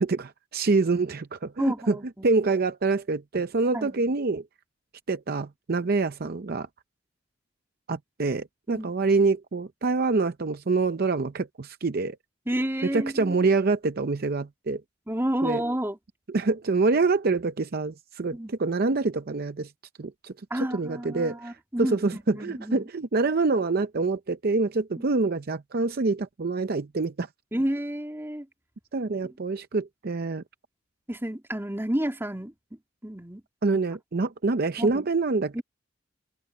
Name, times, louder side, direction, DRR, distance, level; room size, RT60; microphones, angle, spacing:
voice 1, 0.0-2.0 2.2-4.4 5.1-6.7 7.9-12.2 12.8-14.8 15.4-15.6 16.3-19.7 20.0-27.3 28.9-30.4 33.6-35.6, right 3 dB, 50° right, 0.6 m, -26 dB
voice 2, 1.6-2.3 3.7-4.0 8.7-9.1 12.5-13.4 15.1-16.0 18.3-18.6 20.5-22.9 25.0-25.1 27.5-28.5 31.1-32.5 33.0-33.4 34.8-35.0 35.5-35.6, right 1 dB, 10° right, 2.8 m, -30 dB
open air
head